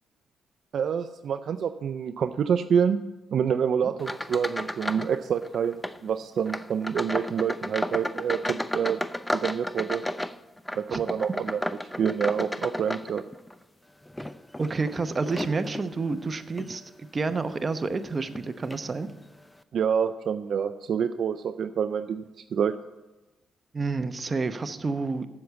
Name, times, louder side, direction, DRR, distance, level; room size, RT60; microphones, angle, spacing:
voice 1, 0.7-3.0 3.3-9.0 9.3-10.0 10.8-11.6 12.0-13.2 19.7-22.7, right 7 dB, 65° right, 10 dB, 0.4 m, -27 dB
sound 1, 4.0-5.2 5.4-6.0 6.5-13.5 14.1-15.9 16.5-16.7 17.3-17.4 18.3-18.4 18.7-18.9, left 1 dB, 10° left, 0.6 m, -33 dB
voice 2, 14.6-16.8 17.1-19.1 23.7-25.3, right 4 dB, 35° right, 10 dB, 0.8 m, -29 dB
7.8 x 7.2 x 8.0 m, 1.1 s
supercardioid pair, 65°, 0 cm